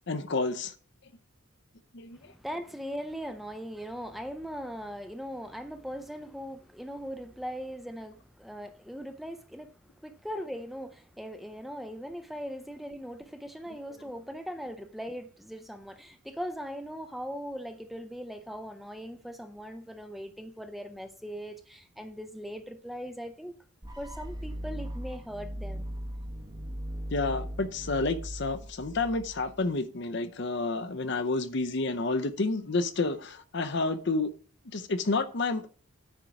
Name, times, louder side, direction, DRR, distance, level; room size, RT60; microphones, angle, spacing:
voice 1, 0.1-0.7 1.9-2.2 27.1-34.3 34.7-35.7, left 3 dB, 55° left, 0.7 m, -30 dB
voice 2, 2.1-9.7 10.0-23.5 24.0-25.9, equal, ahead, 0.5 m, -40 dB
sound 1, 23.8-29.7, equal, 20° right, 0.9 m, -39 dB
9.2 x 4.5 x 6.0 m
head